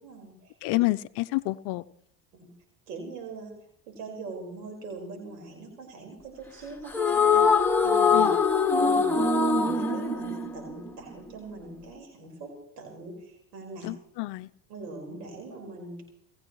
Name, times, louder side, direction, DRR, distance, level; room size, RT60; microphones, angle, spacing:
voice 1, 0.0-0.5 2.3-2.5 2.9-3.5 3.9-7.4 7.8-8.3 8.8-9.2 9.6-12.5 12.8-13.9 14.7-16.0, right 3 dB, 75° right, 4.9 m, -42 dB
voice 2, 0.6-1.8 8.1-8.3 13.8-14.5, left 21 dB, 60° left, 0.7 m, -28 dB
sound 1, 6.9-11.3, left 4 dB, 5° left, 2.1 m, -23 dB
29.0 x 14.5 x 3.1 m
hypercardioid pair, 75°, 48 cm